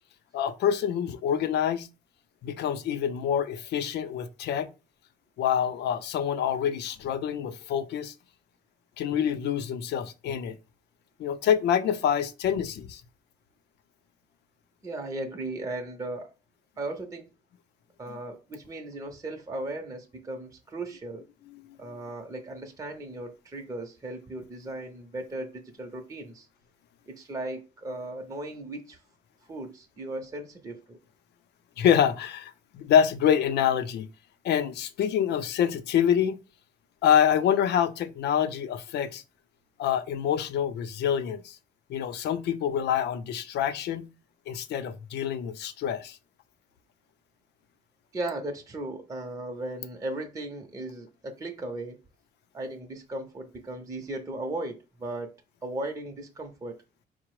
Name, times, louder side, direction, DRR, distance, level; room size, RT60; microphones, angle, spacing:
voice 1, 0.3-1.9 2.4-4.7 5.4-8.1 9.0-10.6 11.2-13.0 31.8-34.1 34.4-36.4 37.0-39.2 39.8-41.6 41.9-44.1 44.5-46.2, left 9 dB, 85° left, 0.5 m, -26 dB
voice 2, 14.8-16.3 16.8-17.2 18.0-21.2 21.8-26.5 27.1-29.0 29.5-31.0 48.1-52.0 52.5-55.3 55.6-56.8, right 2 dB, 20° right, 0.6 m, -36 dB
4.9 x 2.0 x 4.6 m
cardioid pair, 140°, 17 cm